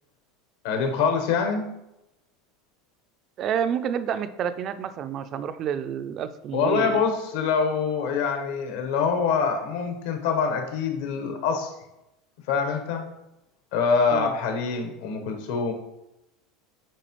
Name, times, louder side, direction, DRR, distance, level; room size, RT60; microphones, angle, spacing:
voice 1, 0.6-1.7 6.5-11.7 12.5-13.0 13.7-15.7, left 5 dB, 65° left, 4 dB, 1.0 m, -25 dB
voice 2, 3.4-7.0 14.1-14.3, right 8 dB, 30° right, 12 dB, 0.3 m, -29 dB
9.0 x 4.4 x 3.0 m, 0.90 s
supercardioid pair, 175°, 0 cm